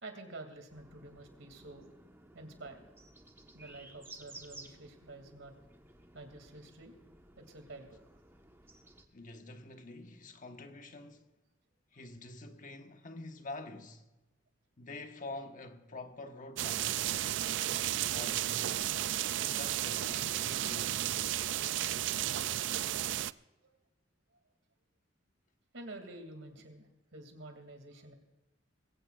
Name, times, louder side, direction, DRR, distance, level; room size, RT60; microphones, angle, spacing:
voice 1, 0.0-1.9 2.3-2.9 3.5-5.5 6.1-7.0 7.4-8.0 23.6-23.8 25.7-28.1, right 2 dB, 85° right, 2.7 m, -49 dB
sound 1, 0.7-9.1, right 2 dB, 15° right, 1.3 m, -56 dB
voice 2, 9.1-11.3 11.9-14.0 14.8-17.0 18.1-18.9 19.3-21.0, left 2 dB, 45° left, 1.3 m, -47 dB
sound 2, 16.6-23.3, right 12 dB, 70° right, 0.4 m, -33 dB
21.5 x 17.0 x 2.5 m
head